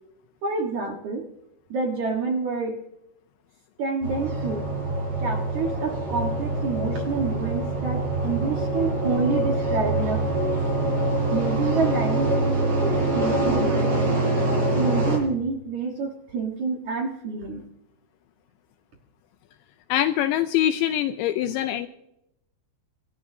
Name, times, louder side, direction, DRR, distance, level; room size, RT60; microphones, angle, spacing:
voice 1, 0.4-1.3 1.7-2.8 3.8-4.7 5.2-10.6 11.3-13.9 14.5-17.6, right 4 dB, 65° right, 1 dB, 1.8 m, -28 dB
sound 1, 4.0-15.2, right 2 dB, 30° right, 8.2 m, -25 dB
voice 2, 19.9-21.9, left 12 dB, 80° left, 8 dB, 2.7 m, -23 dB
27.5 x 14.0 x 2.7 m, 0.82 s
omnidirectional pair, 5.7 m